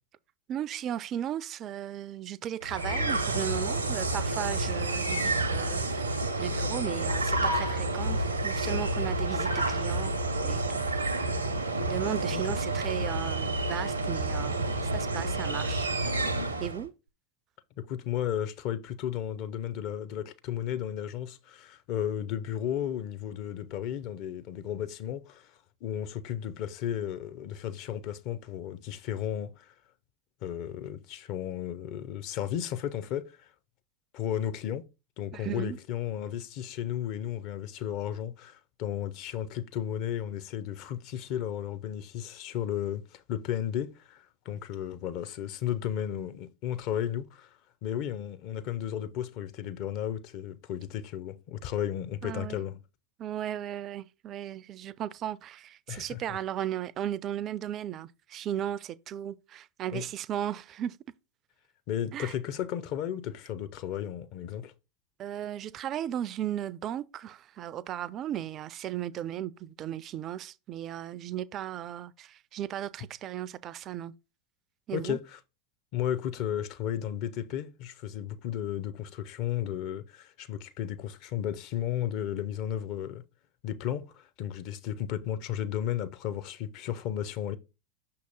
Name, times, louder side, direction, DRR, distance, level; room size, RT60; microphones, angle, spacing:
voice 1, 0.5-10.1 10.4-10.8 11.9-16.2 16.6-16.9 35.3-35.8 52.2-52.6 53.2-61.0 62.1-62.3 65.2-74.1 74.9-75.2, right 11 dB, 35° right, 0.3 m, -36 dB
sound 1, 2.6-16.8, right 2 dB, 85° right, 0.7 m, -29 dB
voice 2, 17.8-25.5 25.8-29.7 30.4-33.5 34.1-34.8 35.2-47.5 47.8-52.8 55.9-56.4 59.9-60.0 61.9-64.7 74.9-75.4 75.9-83.2 83.6-87.6, left 10 dB, 45° left, 0.6 m, -34 dB
6.2 x 2.9 x 5.3 m
figure-of-eight pair, 85°, 0 cm